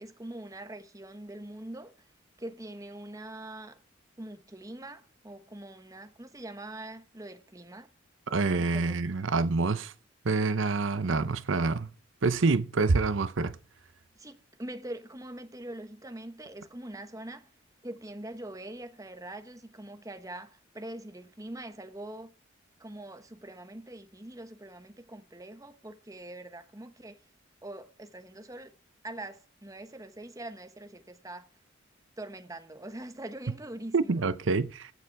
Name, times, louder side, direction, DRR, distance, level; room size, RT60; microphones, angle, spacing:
voice 1, 0.0-1.9 2.4-3.8 4.2-7.9 8.5-9.0 14.2-17.5 17.8-22.3 22.8-27.2 27.6-28.7 29.0-31.5 32.2-34.3, right 1 dB, 15° right, 1.1 m, -43 dB
voice 2, 8.3-9.9 10.2-11.9 12.2-13.6 33.9-34.9, right 3 dB, 75° right, 0.7 m, -26 dB
16.0 x 6.9 x 4.6 m
head